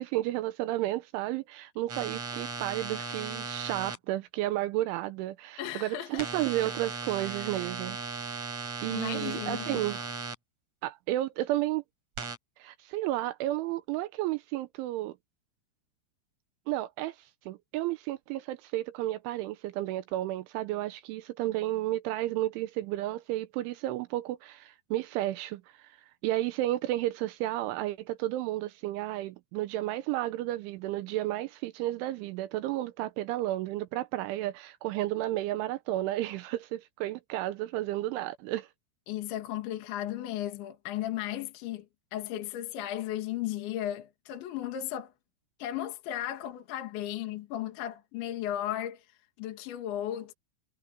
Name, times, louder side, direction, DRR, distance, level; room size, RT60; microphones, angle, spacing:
voice 1, 0.0-8.0 8.2-8.5 8.8-10.1 10.8-11.8 12.6-15.2 16.7-17.2 17.5-26.0 26.2-38.7, right 15 dB, 80° right, 2.9 m, -32 dB
sound 1, 1.9-4.0 6.2-10.3 12.2-12.4, right 4 dB, 35° right, 5.7 m, -37 dB
voice 2, 5.6-6.3 7.4-7.5 8.9-9.8 39.1-41.9 42.1-45.1 45.6-49.1 49.4-50.3, left 12 dB, 65° left, 4.3 m, -35 dB
omnidirectional pair, 6.0 m